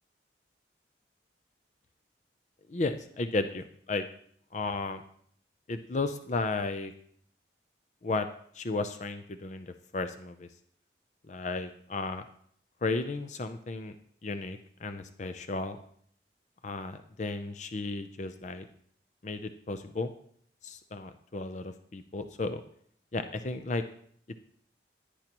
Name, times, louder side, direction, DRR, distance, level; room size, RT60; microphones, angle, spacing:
voice 1, 2.7-4.1 4.5-5.0 5.7-6.9 8.0-8.3 8.5-10.5 11.3-12.2 12.8-13.9 14.2-15.8 16.6-18.7 19.2-20.1 20.6-22.6 23.1-23.8, left 3 dB, 40° left, 9 dB, 0.5 m, -34 dB
16.5 x 10.0 x 3.0 m, 0.63 s
head